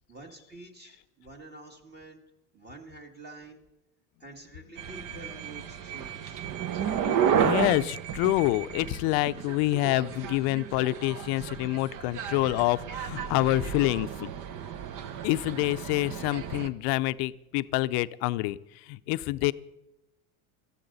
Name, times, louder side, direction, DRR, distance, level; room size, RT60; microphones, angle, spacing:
voice 1, 0.1-2.2 2.5-3.6 4.2-6.4, right 2 dB, 20° right, 3 dB, 2.1 m, -48 dB
sound 1, 4.8-16.7, right 8 dB, 45° right, 1.1 m, -32 dB
voice 2, 7.4-14.3 15.2-18.6 18.9-19.5, left 18 dB, 55° left, 14 dB, 0.7 m, -27 dB
18.0 x 14.0 x 4.1 m, 0.93 s
hypercardioid pair, 90°, 45 cm